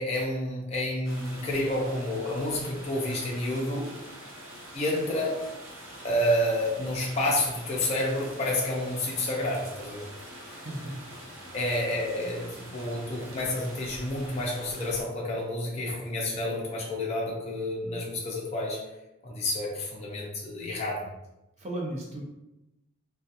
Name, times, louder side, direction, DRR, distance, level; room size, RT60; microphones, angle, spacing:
voice 1, 0.0-3.9 4.7-5.3 6.0-10.0 11.5-18.8 19.2-21.1, left 1 dB, 30° left, -3 dB, 0.5 m, -29 dB
sound 1, 1.0-15.0, right 1 dB, 80° right, 0.7 m, -45 dB
voice 2, 10.4-11.1 11.4-11.6 21.6-22.2, right 1 dB, 30° right, -1 dB, 0.4 m, -36 dB
2.3 x 2.2 x 2.7 m, 0.93 s
head